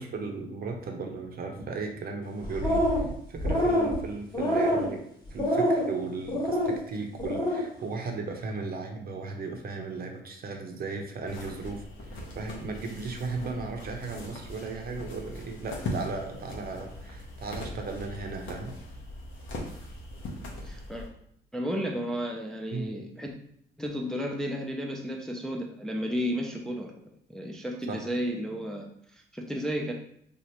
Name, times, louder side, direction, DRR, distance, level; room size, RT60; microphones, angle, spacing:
voice 1, 0.0-5.0 5.3-18.7 22.7-22.9 27.9-28.0, right 4 dB, 50° right, 3 dB, 0.6 m, -36 dB
sound 1, 2.4-3.1 3.4-3.9 4.3-4.9 5.4-5.9 6.3-6.7 7.2-7.6, equal, 20° left, 1.1 m, -25 dB
sound 2, 11.3-21.1, left 1 dB, 75° left, 0.8 m, -40 dB
voice 2, 20.6-21.1 21.5-23.3 23.8-26.9 27.3-29.9, equal, 5° left, 0 dB, 0.4 m, -33 dB
3.1 x 2.4 x 2.9 m, 0.70 s
cardioid pair, 90°, 20 cm